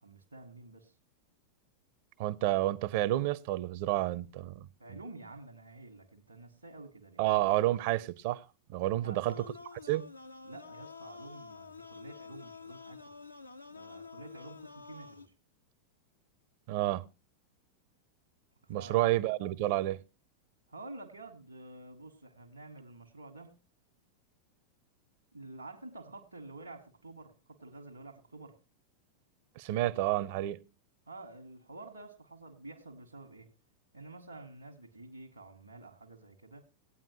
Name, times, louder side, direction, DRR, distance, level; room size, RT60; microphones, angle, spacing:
voice 1, 0.0-0.9 4.8-7.2 8.9-9.6 10.4-13.1 13.7-15.3 18.6-19.1 20.7-23.6 25.3-28.6 31.1-33.5 33.9-36.6, right 2 dB, 85° right, 1.2 m, -49 dB
voice 2, 2.2-4.7 7.2-8.4 8.7-9.3 9.9-10.0 16.7-17.1 18.7-20.0 29.6-30.6, right 15 dB, 50° right, 0.5 m, -30 dB
sound 1, 9.3-15.3, left 5 dB, 85° left, 0.5 m, -49 dB
17.5 x 9.0 x 2.9 m
figure-of-eight pair, 90°, 0 cm